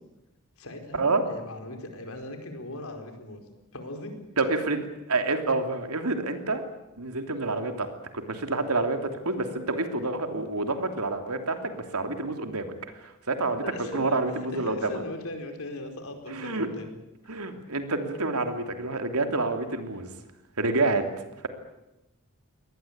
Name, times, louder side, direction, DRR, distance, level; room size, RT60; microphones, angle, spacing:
voice 1, 0.6-3.4 3.7-4.2 13.6-14.2 14.5-16.9, left 1 dB, 70° left, 5 dB, 4.8 m, -39 dB
voice 2, 4.4-4.8 5.1-6.6 7.0-7.9 8.1-12.7 13.0-13.6 13.9-14.9 16.3-16.7 17.3-20.1 20.6-21.0, right 3 dB, 90° right, 6 dB, 3.1 m, -28 dB
23.5 x 19.0 x 8.9 m, 0.93 s
head